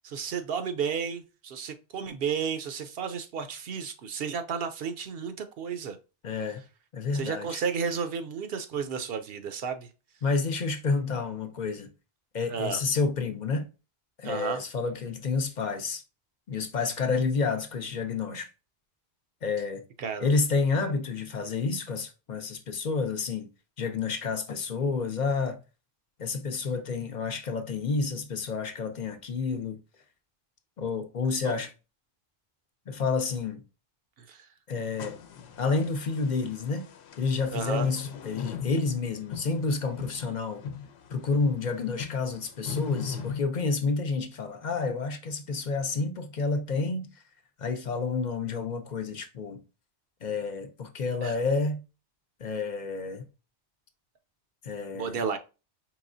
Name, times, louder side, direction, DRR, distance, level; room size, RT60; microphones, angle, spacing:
voice 1, 0.0-6.0 7.1-9.9 12.5-12.8 14.2-14.6 20.0-20.3 31.4-31.6 34.2-34.5 37.5-37.9 51.2-51.3 54.9-55.4, right 6 dB, 70° right, 0.8 m, -32 dB
voice 2, 6.2-6.6 6.9-7.6 10.2-11.9 12.3-13.7 14.2-16.0 16.5-18.5 19.4-19.8 20.2-23.5 23.8-25.6 26.2-29.8 30.8-31.7 32.9-33.6 34.7-35.2 35.6-36.9 37.2-40.6 41.1-47.1 47.6-49.6 50.2-51.8 52.4-53.2 54.6-55.2, left 4 dB, 50° left, 0.6 m, -29 dB
sound 1, 34.8-43.4, left 6 dB, 80° left, 0.9 m, -39 dB
4.8 x 3.0 x 2.5 m
omnidirectional pair, 1.1 m